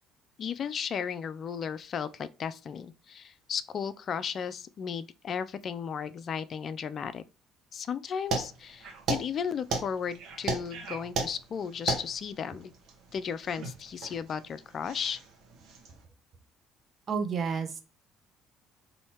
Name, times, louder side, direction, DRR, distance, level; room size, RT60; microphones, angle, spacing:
voice 1, 0.4-7.2 7.7-12.7 13.1-15.2, left 7 dB, 45° left, 0.3 m, -35 dB
sound 1, 8.3-16.0, right 4 dB, 60° right, 1.0 m, -36 dB
voice 2, 17.1-17.8, right 6 dB, 45° right, 0.7 m, -30 dB
4.1 x 2.7 x 3.0 m
figure-of-eight pair, 55°, 0 cm